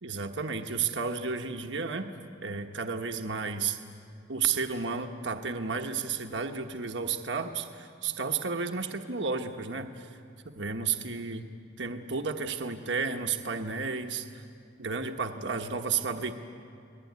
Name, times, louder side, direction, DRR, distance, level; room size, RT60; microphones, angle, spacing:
voice 1, 0.0-2.1 2.4-3.8 4.3-10.1 10.4-11.5 11.8-14.5 14.8-16.3, right 5 dB, 70° right, 5 dB, 1.2 m, -32 dB
30.0 x 19.5 x 9.5 m, 2.4 s
head